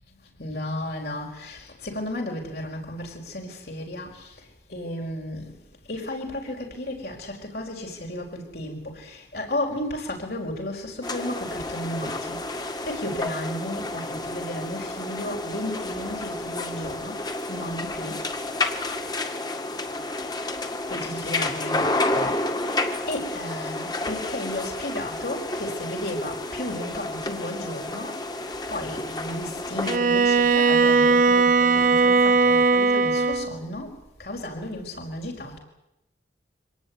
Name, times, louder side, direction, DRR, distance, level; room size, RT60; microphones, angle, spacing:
voice 1, 0.4-4.3 4.7-5.5 5.9-17.2 17.5-18.2 20.9-22.4 23.1-28.1 28.7-33.9 34.2-35.6, left 1 dB, 60° left, 0 dB, 5.0 m, -33 dB
sound 1, 11.0-30.0, left 2 dB, 20° left, 2.0 m, -30 dB
Bowed string instrument, 29.8-33.6, right 4 dB, 45° right, 0.8 m, -19 dB
25.0 x 18.5 x 9.5 m, 0.90 s
head